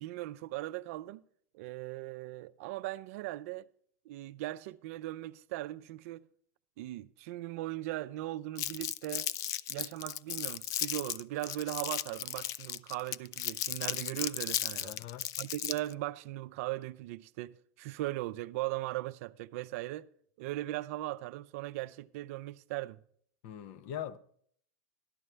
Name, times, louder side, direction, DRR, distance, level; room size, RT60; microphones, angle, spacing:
voice 1, 0.0-1.2 1.5-3.7 4.1-6.3 6.8-9.3 9.7-14.9 15.4-20.1 20.4-23.0, right 16 dB, 65° right, 0.5 m, -38 dB
Crumpling crinkling, 8.6-15.9, left 13 dB, 40° left, 0.3 m, -35 dB
voice 2, 14.8-15.3 23.4-24.2, left 10 dB, 60° left, 0.7 m, -41 dB
13.5 x 11.0 x 3.3 m
supercardioid pair, 125°, 8 cm